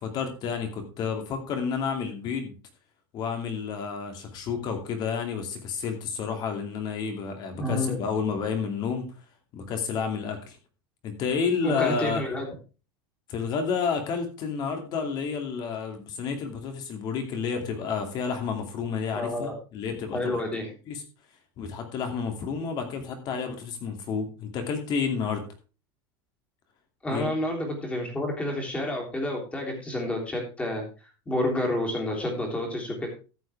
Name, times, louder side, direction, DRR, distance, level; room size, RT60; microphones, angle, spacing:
voice 1, 0.0-2.5 3.1-9.1 9.5-10.6 11.0-12.2 13.3-20.4 20.9-21.0 21.6-25.4 27.1-27.3, left 6 dB, 35° left, 5 dB, 2.7 m, -30 dB
voice 2, 7.5-8.0 11.6-12.5 19.1-19.5 20.1-20.7 27.0-30.8 31.2-33.1, left 1 dB, 10° left, 0 dB, 3.4 m, -29 dB
13.5 x 8.2 x 3.5 m, 0.34 s
supercardioid pair, 160°, 12 cm